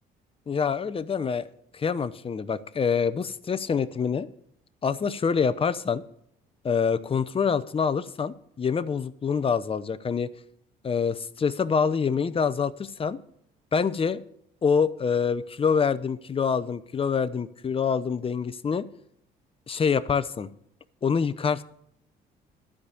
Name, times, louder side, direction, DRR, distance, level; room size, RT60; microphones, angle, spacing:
voice 1, 0.5-1.5 1.7-4.3 4.8-6.0 6.6-10.3 10.8-13.2 13.7-14.2 14.6-18.9 19.7-20.5 21.0-21.6, left 6 dB, 30° left, 15 dB, 0.7 m, -26 dB
12.0 x 5.0 x 8.4 m, 0.72 s
supercardioid pair, 80°, 19 cm